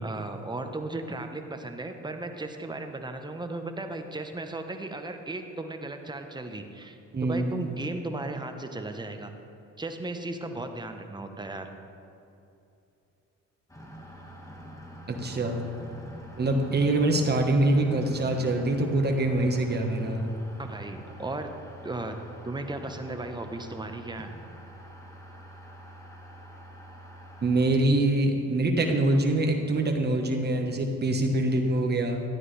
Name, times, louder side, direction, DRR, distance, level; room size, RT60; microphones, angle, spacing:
voice 1, 0.0-9.3 9.8-11.7 20.6-21.5 21.8-22.2 22.4-24.3, right 2 dB, 15° right, 6 dB, 0.8 m, -36 dB
voice 2, 7.1-7.5 15.1-15.6 16.4-20.3 27.4-32.2, right 2 dB, 35° right, 2 dB, 1.3 m, -24 dB
sound 1, 13.7-27.6, equal, 10° left, 1.6 m, -45 dB
12.5 x 9.7 x 3.3 m, 2.7 s
cardioid pair, 90°, 30 cm